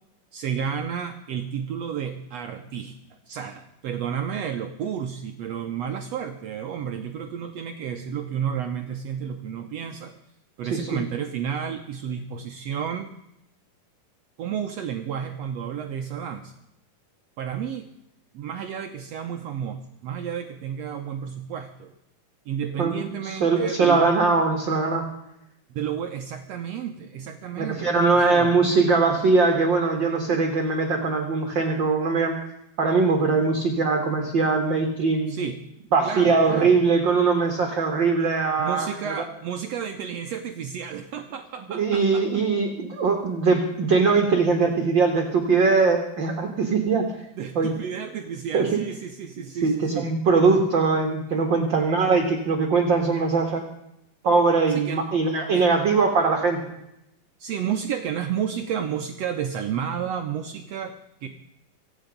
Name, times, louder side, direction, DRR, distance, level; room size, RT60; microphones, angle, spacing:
voice 1, 0.3-10.1 10.6-13.1 14.4-16.5 17.4-17.9 18.3-21.9 22.5-24.1 25.7-27.9 28.1-28.6 35.3-35.6 36.0-36.8 38.6-42.3 47.4-50.1 54.7-55.1 55.5-55.7 57.4-61.3, right 8 dB, 85° right, 5 dB, 1.4 m, -31 dB
voice 2, 22.8-25.0 27.5-32.3 32.8-35.3 35.9-39.1 41.7-47.1 47.5-47.7 48.5-48.8 49.6-53.6 54.2-56.6, right 4 dB, 50° right, 4 dB, 1.5 m, -21 dB
24.5 x 8.8 x 5.2 m, 0.85 s
omnidirectional pair, 4.1 m